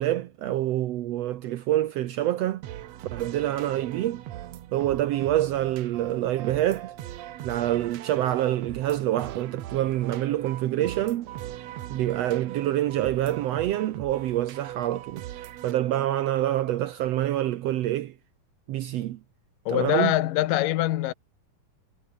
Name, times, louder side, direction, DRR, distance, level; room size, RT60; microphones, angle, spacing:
voice 1, 0.0-2.6 3.1-4.2 4.7-6.9 7.4-11.3 11.9-15.2 15.6-18.1 18.7-19.2 19.7-20.1, right 13 dB, 85° right, 1.4 m, -26 dB
sound 1, 2.6-15.7, right 13 dB, 65° right, 1.8 m, -40 dB
voice 2, 19.7-21.1, left 15 dB, 75° left, 2.7 m, -24 dB
omnidirectional pair, 4.0 m